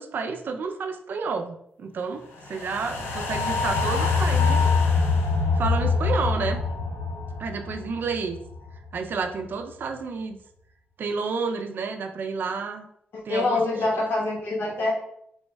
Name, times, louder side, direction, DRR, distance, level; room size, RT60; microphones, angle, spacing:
voice 1, 0.0-4.7 5.5-6.6 7.4-8.4 8.9-10.4 11.0-12.9 13.2-13.9, right 5 dB, 55° right, 6 dB, 0.3 m, -30 dB
sound 1, 2.5-8.9 9.2-9.3, left 4 dB, 90° left, 0.5 m, -24 dB
voice 2, 13.1-15.0, left 2 dB, 65° left, -4 dB, 1.0 m, -25 dB
3.4 x 2.2 x 3.1 m, 0.72 s
wide cardioid pair, 160°, 4 cm